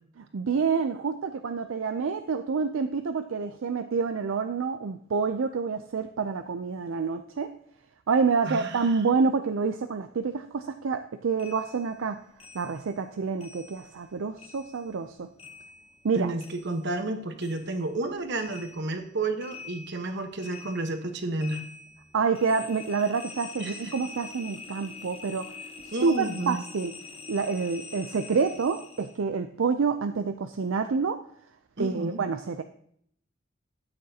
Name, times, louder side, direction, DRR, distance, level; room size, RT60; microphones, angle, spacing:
voice 1, 0.3-7.5 8.1-12.2 12.5-15.3 16.0-16.3 22.1-25.4 26.0-26.9 27.3-31.2 31.8-32.6, right 5 dB, 75° right, 7 dB, 0.5 m, -28 dB
voice 2, 8.5-9.0 16.1-21.6 23.6-23.9 25.9-26.6 31.8-32.2, right 2 dB, 60° right, 6 dB, 1.2 m, -31 dB
sound 1, 11.4-14.1 14.4-17.1 17.4-29.2, left 4 dB, 30° left, 0.9 m, -46 dB
13.0 x 8.8 x 2.8 m, 0.66 s
head